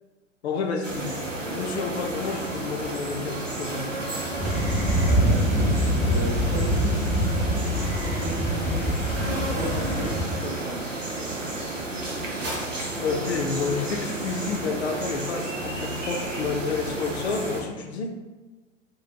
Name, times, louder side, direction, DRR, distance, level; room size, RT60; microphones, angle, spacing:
voice 1, 0.4-1.1 1.5-3.9 13.0-18.1, left 5 dB, 60° left, 3 dB, 0.5 m, -30 dB
sound 1, 0.8-17.6, right 2 dB, 90° right, 0.7 m, -32 dB
sound 2, 4.0-11.4 11.9-14.2 14.6-14.8, right 1 dB, 45° right, 1.1 m, -44 dB
sound 3, 4.4-10.3, equal, 5° left, 0.3 m, -24 dB
voice 2, 5.0-7.1 8.1-9.0 9.4-10.9, right 1 dB, 25° right, -2 dB, 0.7 m, -35 dB
4.8 x 2.2 x 2.8 m, 1.2 s
figure-of-eight pair, 95°, 37 cm